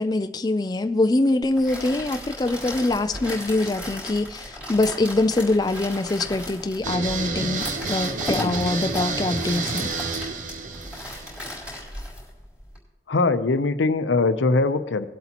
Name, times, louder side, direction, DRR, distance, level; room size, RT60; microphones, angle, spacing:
voice 1, 0.0-9.9, left 2 dB, 20° left, 9 dB, 0.3 m, -24 dB
sound 1, 1.4-12.8, left 1 dB, 5° right, 3.7 m, -36 dB
sound 2, 6.8-11.8, right 4 dB, 45° right, 0.7 m, -30 dB
voice 2, 8.4-8.7 13.1-15.1, left 3 dB, 85° left, 11 dB, 0.7 m, -22 dB
19.0 x 8.0 x 2.9 m, 1.0 s
head